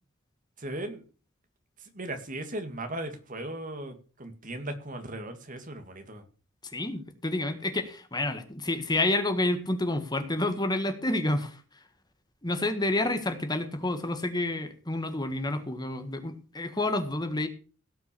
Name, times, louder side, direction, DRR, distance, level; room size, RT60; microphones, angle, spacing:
voice 1, 0.6-1.0 1.8-6.3, right 1 dB, 40° right, 7 dB, 2.2 m, -37 dB
voice 2, 6.7-11.6 12.4-17.5, left 2 dB, 20° left, 7 dB, 1.7 m, -29 dB
17.0 x 6.1 x 6.9 m, 0.37 s
head